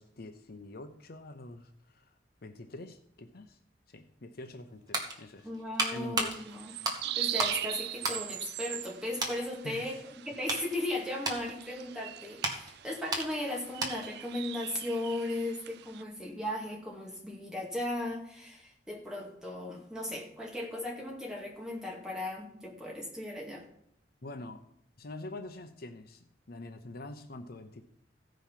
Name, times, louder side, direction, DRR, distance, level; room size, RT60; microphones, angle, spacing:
voice 1, 0.0-2.1 2.4-3.6 3.9-5.5 5.9-6.4 9.6-10.0 24.2-24.7 25.0-27.8, left 2 dB, 60° left, 7 dB, 0.8 m, -45 dB
sound 1, 4.5-7.6 7.9-8.9 9.2-9.4 10.0-14.2 14.5-14.7, right 2 dB, 25° right, 1.8 m, -35 dB
voice 2, 5.4-6.7 7.2-10.0 10.2-23.6, left 1 dB, 5° right, -2 dB, 2.3 m, -37 dB
sound 2, 6.3-16.0, right 13 dB, 65° right, 0.4 m, -41 dB
15.5 x 5.2 x 5.8 m, 0.72 s
head